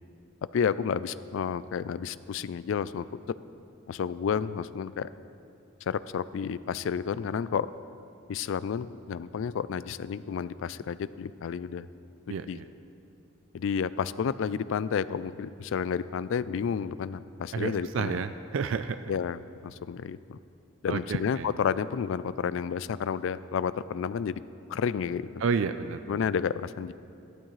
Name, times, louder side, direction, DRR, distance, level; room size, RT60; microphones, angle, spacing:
voice 1, 0.5-3.2 3.9-5.1 5.9-7.7 8.3-11.9 12.5-12.6 13.5-18.2 19.1-20.4 20.8-24.4 24.7-25.3 26.1-26.9, left 7 dB, 70° left, 16 dB, 0.3 m, -31 dB
voice 2, 12.3-12.7 17.5-18.3 18.5-19.0 20.9-21.2 25.4-26.0, right 5 dB, 75° right, 10 dB, 0.4 m, -29 dB
14.5 x 12.5 x 3.2 m, 2.7 s
head